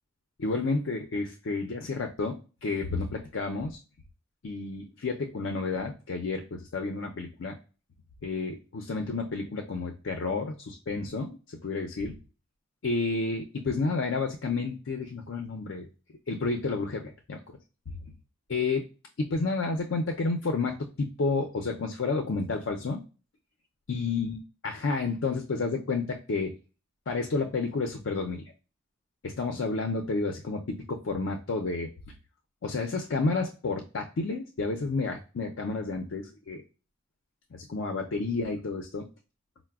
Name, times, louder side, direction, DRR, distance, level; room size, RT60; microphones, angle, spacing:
voice 1, 0.4-2.3 2.6-3.8 4.4-7.6 8.2-12.2 12.8-15.9 16.3-17.6 17.9-18.0 18.5-18.8 19.2-23.0 23.9-24.4 24.6-26.5 27.1-28.4 29.2-31.9 32.6-36.6 37.5-39.1, left 3 dB, 75° left, 3 dB, 0.5 m, -30 dB
4.7 x 2.0 x 2.3 m, 0.35 s
head